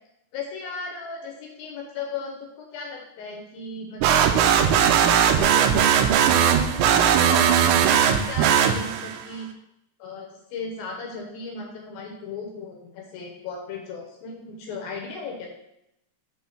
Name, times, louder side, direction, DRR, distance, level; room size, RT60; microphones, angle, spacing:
voice 1, 0.3-7.5 7.9-9.5 10.0-15.5, left 4 dB, 70° left, 1 dB, 2.4 m, -36 dB
sound 1, 4.0-9.2, right 8 dB, 85° right, 2.8 m, -19 dB
7.9 x 3.7 x 5.6 m, 0.85 s
omnidirectional pair, 5.0 m